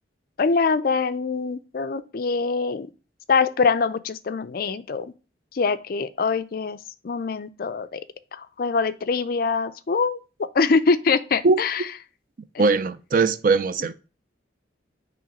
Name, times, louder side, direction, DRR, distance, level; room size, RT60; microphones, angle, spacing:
voice 1, 0.4-2.9 3.3-5.1 5.5-6.8 7.0-8.0 8.3-11.8 12.5-12.6, left 4 dB, 55° left, 0.4 m, -24 dB
voice 2, 12.6-13.9, right 4 dB, 50° right, 0.5 m, -20 dB
7.7 x 3.1 x 5.2 m
head